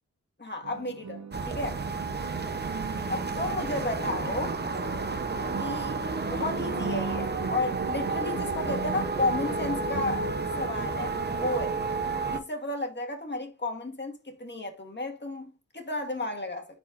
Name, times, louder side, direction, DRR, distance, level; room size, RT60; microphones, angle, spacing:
voice 1, 0.4-1.8 3.1-4.6 5.6-10.3 10.6-12.0 12.3-16.7, left 2 dB, 35° left, 1.9 m, -33 dB
sound 1, 0.6-10.4, right 6 dB, 65° right, 0.8 m, -39 dB
sound 2, 1.3-12.4, right 3 dB, 35° right, 0.9 m, -31 dB
sound 3, 3.6-10.7, left 1 dB, 80° left, 2.1 m, -45 dB
9.4 x 4.4 x 2.6 m
wide cardioid pair, 75°, 30 cm